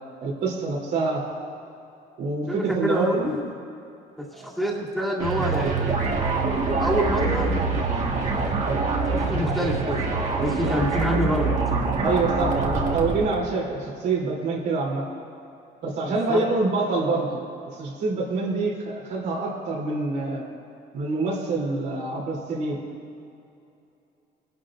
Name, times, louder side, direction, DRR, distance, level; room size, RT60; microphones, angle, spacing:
voice 1, 0.2-1.2 2.2-3.3 4.3-4.5 8.6-8.8 12.0-15.0 15.8-17.4 17.7-20.5 20.9-22.8, right 3 dB, 80° right, -3 dB, 3.1 m, -26 dB
voice 2, 2.5-3.5 4.2-6.0 6.3-6.4 6.8-7.5 9.1-10.1 10.4-11.5 16.1-16.4, equal, ahead, -5 dB, 2.1 m, -26 dB
sound 1, 5.2-13.4, right 3 dB, 45° right, 1.5 m, -25 dB
21.5 x 11.5 x 2.5 m, 2.6 s
cardioid pair, 110°, 17 cm